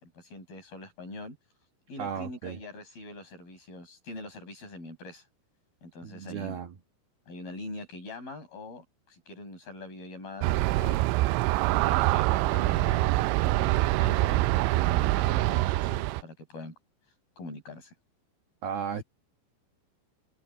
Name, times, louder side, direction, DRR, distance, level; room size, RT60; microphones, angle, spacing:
voice 1, 0.0-1.4 1.9-5.2 5.8-6.6 7.3-11.1 11.7-14.4 14.8-16.7 17.4-17.9, left 2 dB, 45° left, 8.8 m, -43 dB
voice 2, 2.0-2.6 6.0-6.7 18.6-19.0, right 7 dB, 60° right, 3.0 m, -35 dB
Aircraft, 10.4-16.2, right 18 dB, 85° right, 2.7 m, -25 dB
omnidirectional pair, 5.7 m